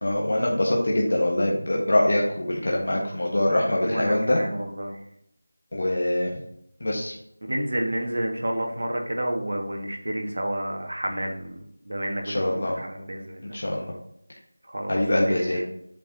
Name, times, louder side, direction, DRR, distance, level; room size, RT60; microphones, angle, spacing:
voice 1, 0.0-4.4 5.7-6.3 6.8-7.1 12.2-12.7 13.4-13.9 14.9-15.6, left 1 dB, 50° left, -2 dB, 1.3 m, -24 dB
voice 2, 3.8-5.0 7.5-13.4 14.7-15.6, right 1 dB, 60° right, 1 dB, 1.7 m, -30 dB
8.1 x 4.6 x 2.7 m, 0.76 s
figure-of-eight pair, 175°, 0 cm